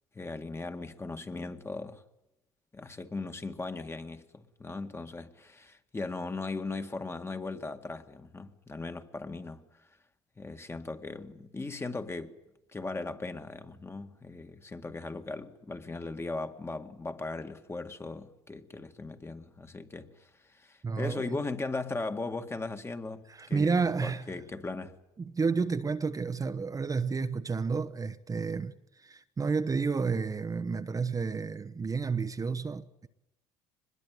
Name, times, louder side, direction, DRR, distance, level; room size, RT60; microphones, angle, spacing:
voice 1, 0.2-2.0 2.7-9.6 10.4-12.4 12.7-25.0, left 3 dB, 20° left, 2.0 m, -38 dB
voice 2, 20.8-21.4 23.3-24.3 25.2-33.1, right 4 dB, 25° right, 1.1 m, -31 dB
24.0 x 21.0 x 9.4 m
supercardioid pair, 80°, 13 cm